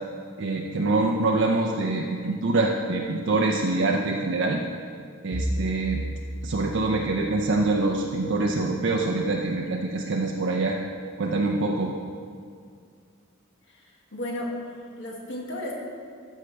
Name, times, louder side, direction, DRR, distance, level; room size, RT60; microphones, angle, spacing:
voice 1, 0.4-4.6 5.2-6.0 6.4-10.8 11.2-11.9, right 2 dB, 60° right, -1 dB, 0.6 m, -25 dB
Bowed string instrument, 5.3-9.5, equal, 10° right, 0.5 m, -35 dB
voice 2, 13.7-14.5 15.0-15.7, left 1 dB, 60° left, -1 dB, 1.6 m, -34 dB
13.5 x 6.5 x 3.3 m, 2.2 s
head